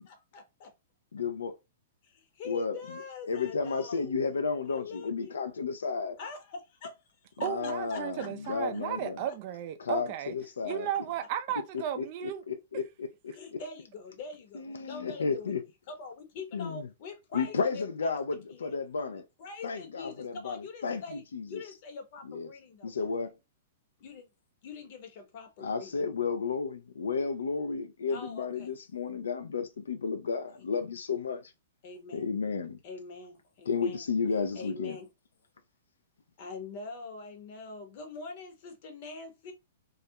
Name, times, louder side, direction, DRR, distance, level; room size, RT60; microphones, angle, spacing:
voice 1, 0.1-0.7 2.0-4.1 4.6-5.4 6.2-6.9 7.4-8.5 9.3-9.4 13.3-15.5 15.9-18.2 18.5-18.7 19.1-21.2 21.5-23.1 24.0-24.3 24.6-26.0 28.1-28.7 31.8-32.3 32.8-34.1 34.5-35.1 36.4-39.5, left 4 dB, 50° left, 0.8 m, -44 dB
voice 2, 1.1-1.5 2.4-3.0 3.3-6.2 7.4-9.2 9.8-10.9 11.7-13.6 14.5-15.6 16.5-16.9 17.3-19.2 19.6-21.6 22.3-22.5 22.8-23.3 25.6-31.5 32.1-32.8 33.7-35.0, left 5 dB, 85° left, 0.4 m, -33 dB
voice 3, 7.4-10.3 10.6-12.4, right 10 dB, 45° right, 0.4 m, -34 dB
2.4 x 2.1 x 2.7 m
hypercardioid pair, 130°, 0 cm